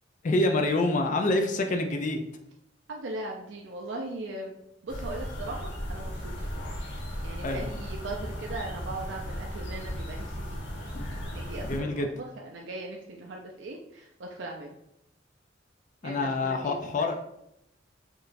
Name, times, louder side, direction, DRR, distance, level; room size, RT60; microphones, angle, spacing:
voice 1, 0.2-2.2 7.4-7.6 11.6-12.1 16.0-17.2, left 2 dB, 45° left, 4 dB, 0.4 m, -26 dB
voice 2, 2.9-4.5 4.8-6.5 7.2-10.6 11.3-14.7 16.0-16.8, right 2 dB, 70° right, 0 dB, 0.5 m, -39 dB
sound 1, 4.9-11.8, equal, 70° left, 1.2 m, -36 dB
4.6 x 3.1 x 2.5 m, 0.79 s
head